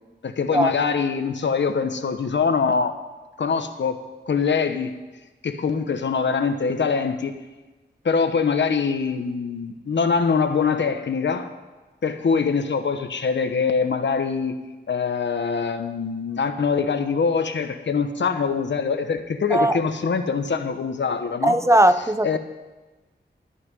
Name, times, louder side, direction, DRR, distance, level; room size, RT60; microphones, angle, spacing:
voice 1, 0.2-2.9 3.4-4.9 5.4-7.3 8.0-11.5 12.0-14.6 14.9-21.6 22.2-22.4, left 5 dB, 80° left, 8 dB, 1.0 m, -23 dB
voice 2, 21.4-22.4, right 1 dB, 15° right, 12 dB, 0.5 m, -18 dB
14.0 x 5.8 x 9.8 m, 1.2 s
wide cardioid pair, 105°, 18 cm